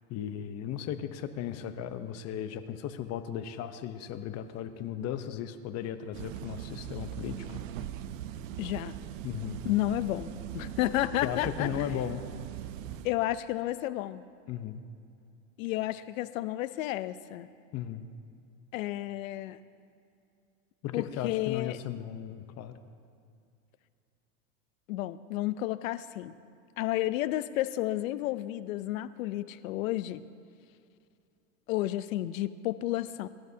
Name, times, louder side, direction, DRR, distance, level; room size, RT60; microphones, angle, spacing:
voice 1, 0.1-7.6 9.2-9.6 11.2-12.2 14.5-14.8 17.7-18.0 20.8-22.7, left 10 dB, 40° left, 10 dB, 0.9 m, -36 dB
sound 1, 6.1-13.1, right 11 dB, 75° right, 0.8 m, -40 dB
voice 2, 8.6-8.9 9.6-11.7 13.0-14.2 15.6-17.5 18.7-19.6 20.9-21.8 24.9-26.4 26.8-30.2 31.7-33.3, left 15 dB, 80° left, 14 dB, 0.7 m, -31 dB
26.0 x 12.0 x 2.8 m, 2.5 s
supercardioid pair, 125°, 40 cm